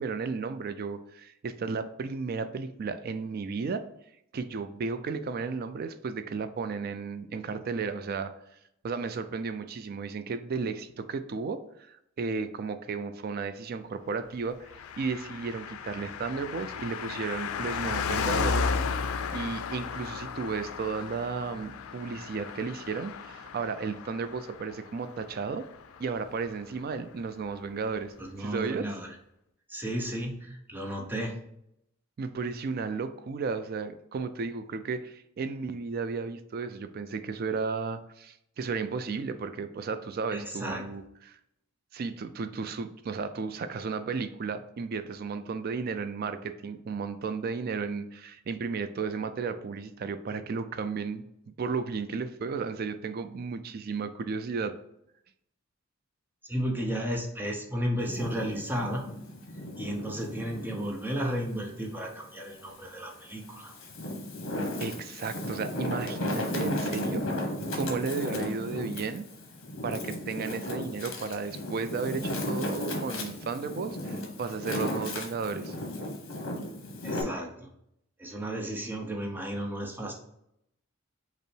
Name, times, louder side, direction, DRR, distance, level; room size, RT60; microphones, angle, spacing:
voice 1, 0.0-3.8 4.3-8.3 8.8-14.7 15.0-18.7 19.3-25.6 26.0-28.1 28.4-28.9 32.2-41.4 41.9-51.2 51.6-54.8 64.8-67.3 67.7-69.3 69.8-75.7, right 5 dB, 45° right, 11 dB, 0.3 m, -34 dB
Car passing by, 14.7-26.5 26.8-26.9, left 5 dB, 90° left, 0.4 m, -34 dB
voice 2, 28.2-29.1 29.7-31.4 40.3-40.8 56.4-59.1 59.8-63.7 77.0-77.7 78.2-80.1, equal, 10° right, 0 dB, 0.7 m, -33 dB
Wind, 58.0-60.8 61.4-62.6 63.3-77.2, left 1 dB, 65° left, 1.0 m, -35 dB
5.3 x 2.1 x 4.4 m, 0.78 s
head